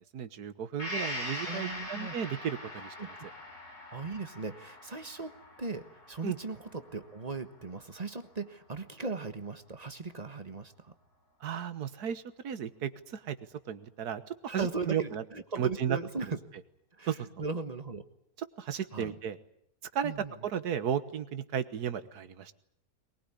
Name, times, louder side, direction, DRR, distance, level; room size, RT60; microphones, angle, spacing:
voice 1, 0.1-2.9 6.2-6.4 11.4-13.4 13.7-15.2 15.6-16.0 17.1-17.3 18.4-19.4 19.9-20.1 20.4-22.5, right 8 dB, 65° right, 12 dB, 1.7 m, -34 dB
Gong, 0.8-8.4 8.8-8.9, left 1 dB, 65° left, 6.8 m, -42 dB
voice 2, 1.5-2.2 3.0-3.1 3.9-10.9 14.5-16.3 17.0-18.0 18.9-19.1 20.0-20.3, right 4 dB, 25° right, 9 dB, 1.4 m, -38 dB
22.5 x 20.5 x 9.9 m, 0.70 s
omnidirectional pair, 1.8 m